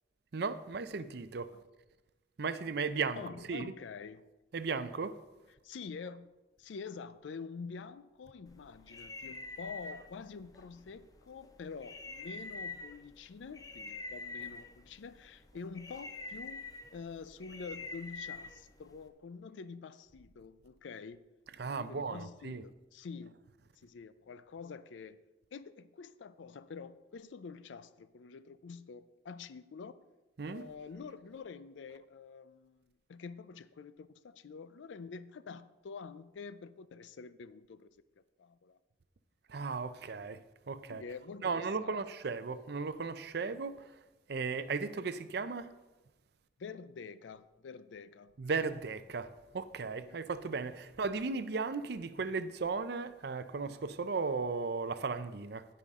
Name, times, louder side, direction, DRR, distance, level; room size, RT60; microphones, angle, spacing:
voice 1, 0.3-1.6 2.4-3.7 4.5-5.2 21.6-22.6 30.4-30.7 39.5-41.0 41.4-43.9 44.3-45.7 48.4-55.7, right 4 dB, 60° right, 0.5 m, -36 dB
voice 2, 3.2-4.3 5.6-6.3 6.6-16.6 16.9-21.2 21.7-23.3 23.8-25.2 25.5-29.9 30.5-37.9 38.4-38.8 40.9-42.0 46.6-48.3 50.1-50.2, left 5 dB, 90° left, 0.4 m, -47 dB
sound 1, 8.5-19.1, left 3 dB, 20° left, 0.6 m, -47 dB
16.5 x 5.6 x 3.6 m
head